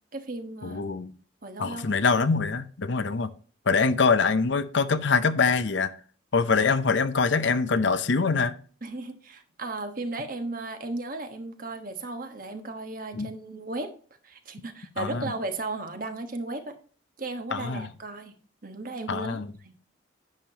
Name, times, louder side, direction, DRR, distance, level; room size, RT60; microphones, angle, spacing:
voice 1, 0.1-0.8 1.4-2.0 8.8-13.9 14.2-16.7 17.2-18.4 18.6-19.7, right 2 dB, 45° right, 1.2 m, -35 dB
voice 2, 0.6-1.1 1.6-3.3 3.7-5.9 6.3-8.6 13.1-13.3 15.0-15.3 17.5-17.9 19.1-19.5, left 4 dB, 65° left, 0.7 m, -24 dB
10.5 x 7.3 x 2.9 m
head